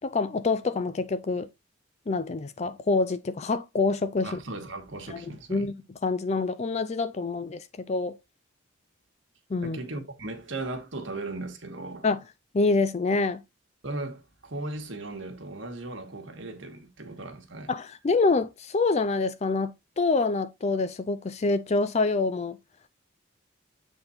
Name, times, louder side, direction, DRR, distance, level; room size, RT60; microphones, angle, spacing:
voice 1, 0.0-1.5 2.1-4.3 5.1-5.2 5.5-5.7 6.0-8.2 9.5-9.8 12.0-12.2 12.5-13.4 17.7-22.6, left 3 dB, 35° left, 0.4 m, -26 dB
voice 2, 4.2-5.7 9.6-12.1 13.8-17.7, right 2 dB, 65° right, 1.6 m, -37 dB
7.8 x 4.0 x 4.2 m
head